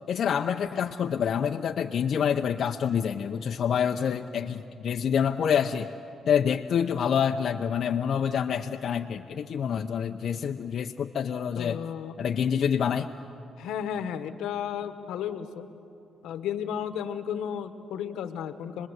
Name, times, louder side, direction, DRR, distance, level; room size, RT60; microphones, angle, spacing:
voice 1, 0.1-5.9 6.3-11.8 12.2-13.1, left 8 dB, 60° left, 4 dB, 0.7 m, -27 dB
voice 2, 11.6-12.1 13.6-15.7 16.2-18.9, left 8 dB, 85° left, 10 dB, 1.2 m, -33 dB
26.5 x 20.5 x 8.0 m, 2.6 s
cardioid pair, 90°, 0 cm